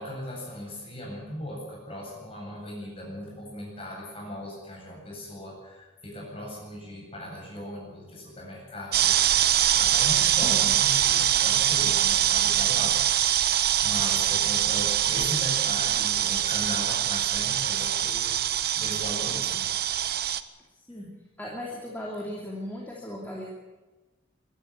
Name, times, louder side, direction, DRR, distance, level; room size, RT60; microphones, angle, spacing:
voice 1, 0.0-13.0 13.3-18.3 18.7-19.6, left 1 dB, 30° left, -2 dB, 7.9 m, -38 dB
sound 1, 8.9-20.4, right 11 dB, 50° right, 0.9 m, -24 dB
voice 2, 21.4-23.5, left 1 dB, 10° left, -3 dB, 2.9 m, -36 dB
23.5 x 12.5 x 9.5 m, 1.2 s
head